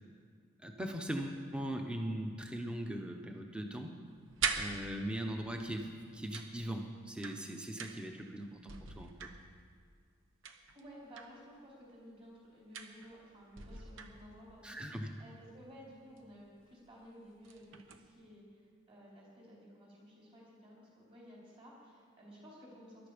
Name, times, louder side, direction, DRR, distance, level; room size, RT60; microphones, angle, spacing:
voice 1, 0.6-3.9 4.6-9.3 14.6-15.1, right 1 dB, 5° right, 3 dB, 0.9 m, -40 dB
sound 1, 4.0-5.4 6.3-8.2 8.5-9.8 10.4-11.4 12.7-13.2 13.6-14.6 16.2-16.3 16.7-16.9 17.3-18.1, right 6 dB, 70° right, 1.0 m, -41 dB
voice 2, 10.7-23.1, equal, 25° right, -5 dB, 4.6 m, -55 dB
21.0 x 11.5 x 5.2 m, 2.1 s
head